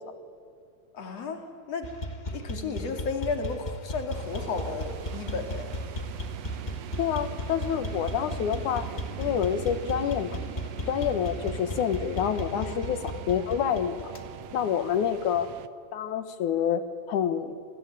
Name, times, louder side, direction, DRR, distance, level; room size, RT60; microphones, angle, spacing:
voice 1, 0.9-1.9 2.3-5.7 12.5-12.7, left 4 dB, 60° left, 5 dB, 3.5 m, -33 dB
sound 1, 1.8-14.3, equal, 30° left, 0.9 m, -36 dB
sound 2, 4.1-15.7, right 10 dB, 70° right, 1.8 m, -42 dB
voice 2, 7.0-8.9 9.2-10.4 10.9-14.1 14.5-15.5 15.9-17.6, left 8 dB, 85° left, 11 dB, 2.9 m, -27 dB
27.5 x 20.0 x 9.1 m, 2.5 s
omnidirectional pair, 3.4 m